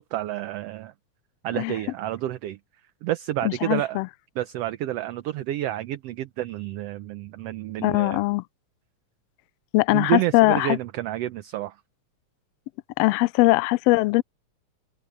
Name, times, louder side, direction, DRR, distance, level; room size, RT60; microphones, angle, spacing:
voice 1, 0.1-0.9 1.4-2.6 3.0-4.0 4.4-8.2 9.9-11.7, right 14 dB, 70° right, 1.6 m, -29 dB
voice 2, 3.4-4.1 7.8-8.4 9.7-10.8 13.0-14.2, left 21 dB, 90° left, 1.4 m, -21 dB
omnidirectional pair, 3.4 m